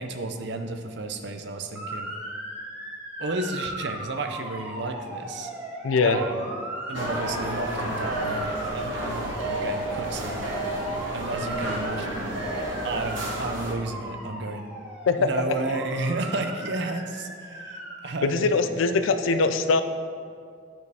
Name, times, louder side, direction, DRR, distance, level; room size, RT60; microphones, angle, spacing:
voice 1, 0.0-2.1 3.2-5.5 6.0-6.5 6.9-10.5 11.1-12.4 12.8-14.7 15.2-18.7, right 2 dB, 60° right, 6 dB, 0.5 m, -32 dB
Motor vehicle (road) / Siren, 1.7-18.0, right 1 dB, 5° right, 0.9 m, -38 dB
voice 2, 5.8-6.2 15.1-15.3 18.2-19.8, left 4 dB, 90° left, 9 dB, 0.4 m, -22 dB
sound 1, 6.9-13.7, right 1 dB, 80° right, 1.1 m, -31 dB
10.5 x 4.4 x 3.5 m, 2.2 s
head